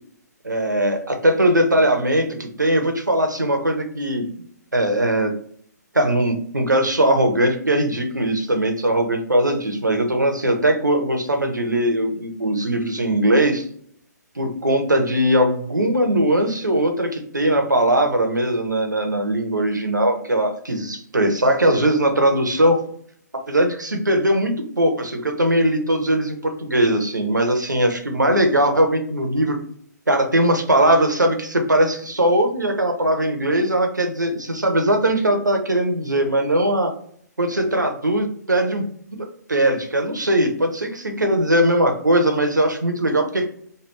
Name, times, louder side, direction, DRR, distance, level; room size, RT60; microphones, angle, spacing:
voice 1, 0.4-4.2 4.7-5.3 5.9-13.7 14.4-22.8 23.5-29.6 30.1-36.9 37.4-38.8 39.2-43.5, right 1 dB, 90° right, 5 dB, 0.7 m, -20 dB
3.2 x 2.2 x 3.1 m, 0.62 s
figure-of-eight pair, 130°, 10 cm